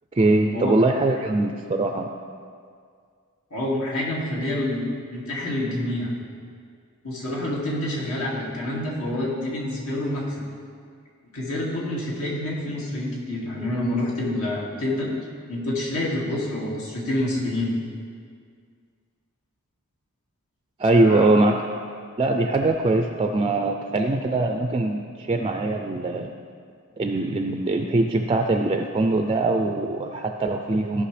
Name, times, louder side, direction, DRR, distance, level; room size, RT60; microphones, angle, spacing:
voice 1, 0.1-2.1 20.8-21.7 22.2-26.3 27.0-31.0, right 2 dB, 25° right, 4 dB, 0.3 m, -22 dB
voice 2, 3.5-4.8 5.1-6.1 7.0-10.4 11.3-15.1 15.5-17.7 20.9-21.3, left 1 dB, 80° left, -5 dB, 2.2 m, -27 dB
15.5 x 5.4 x 3.3 m, 2.1 s
head